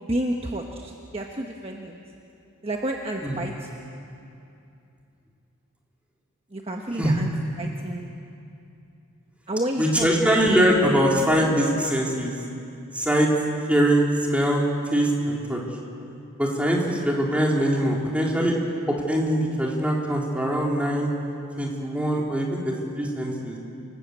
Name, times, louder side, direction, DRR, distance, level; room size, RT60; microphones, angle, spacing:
voice 1, 0.1-2.0 2.6-3.7 6.5-7.3 7.6-8.1 9.5-10.6, right 1 dB, 30° right, 1 dB, 1.3 m, -30 dB
voice 2, 9.8-12.3 12.9-13.3 13.7-14.6 14.9-15.6 16.4-18.5 18.9-21.1 21.6-23.6, equal, 5° right, -2 dB, 3.6 m, -22 dB
28.0 x 19.5 x 8.3 m, 2.7 s
head